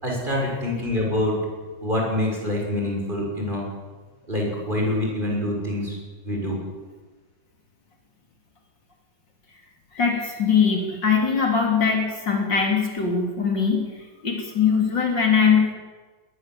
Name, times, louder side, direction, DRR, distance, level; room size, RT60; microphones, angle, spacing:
voice 1, 0.0-1.4 1.8-3.7 4.3-6.0 6.2-6.6, left 1 dB, 25° right, -1 dB, 6.6 m, -25 dB
voice 2, 9.9-13.8 14.2-15.7, left 6 dB, 65° left, 2 dB, 4.0 m, -21 dB
21.0 x 19.5 x 7.9 m, 1.3 s
omnidirectional pair, 2.1 m